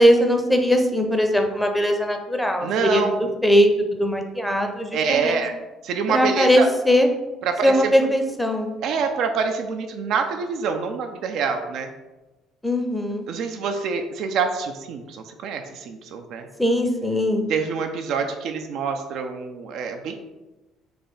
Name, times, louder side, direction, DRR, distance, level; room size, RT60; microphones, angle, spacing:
voice 1, 0.0-3.0 3.4-3.7 4.0-5.4 6.1-7.1 7.6-8.7 12.6-13.2 16.6-17.5, equal, 5° left, 4 dB, 0.7 m, -20 dB
voice 2, 2.6-3.3 4.9-5.5 5.8-6.7 7.4-7.9 8.8-11.9 13.3-16.5 17.5-20.2, right 5 dB, 55° right, 5 dB, 0.3 m, -26 dB
3.4 x 3.0 x 4.1 m, 1.1 s
figure-of-eight pair, 50°, 0 cm